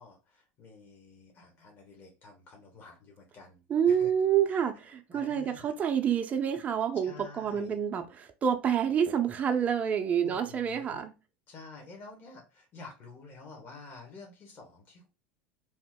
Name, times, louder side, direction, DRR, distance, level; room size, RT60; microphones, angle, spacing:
voice 1, 0.0-4.1 5.1-5.7 7.0-7.8 10.2-11.0 11.5-15.1, left 3 dB, 40° left, 1.1 m, -50 dB
voice 2, 3.7-11.1, right 8 dB, 30° right, 0.4 m, -28 dB
2.9 x 2.0 x 3.5 m
supercardioid pair, 100°, 5 cm